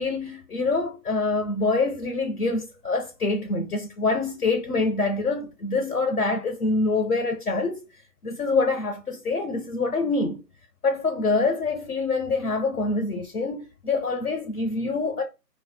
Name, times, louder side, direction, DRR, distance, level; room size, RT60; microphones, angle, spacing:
voice 1, 0.0-7.8 8.2-10.4 10.8-15.2, left 3 dB, 65° left, 0.6 m, -25 dB
2.2 x 2.0 x 3.3 m
figure-of-eight pair, 155°, 49 cm